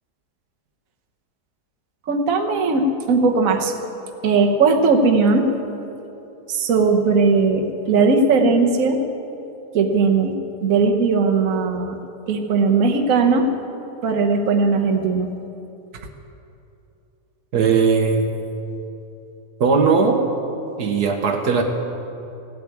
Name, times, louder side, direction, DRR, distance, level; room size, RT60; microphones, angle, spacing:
voice 1, 2.1-3.7 4.2-5.5 6.5-9.0 9.7-12.0 12.3-13.5 14.0-15.3, right 4 dB, 60° right, 2 dB, 1.5 m, -18 dB
voice 2, 17.5-18.2 19.6-20.2 20.8-21.6, right 5 dB, 75° right, 4 dB, 1.6 m, -18 dB
16.0 x 8.5 x 9.5 m, 2.8 s
omnidirectional pair, 1.7 m